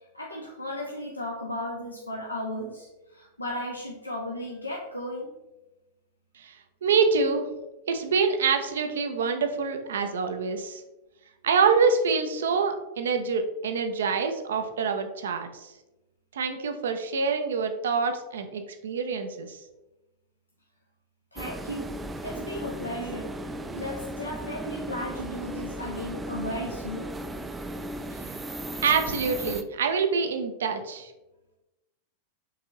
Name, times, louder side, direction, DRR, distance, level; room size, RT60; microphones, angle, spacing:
voice 1, 0.1-5.3 21.3-21.9 22.2-23.3 23.7-27.1, left 1 dB, 85° left, -2 dB, 0.6 m, -35 dB
voice 2, 6.8-7.5 7.9-10.8 11.4-15.7 16.3-19.6 28.8-31.1, right 5 dB, 65° right, 7 dB, 0.5 m, -26 dB
sound 1, 21.4-29.6, right 1 dB, 10° right, 0.3 m, -36 dB
4.7 x 3.5 x 3.0 m, 1.0 s
figure-of-eight pair, 90°, 0 cm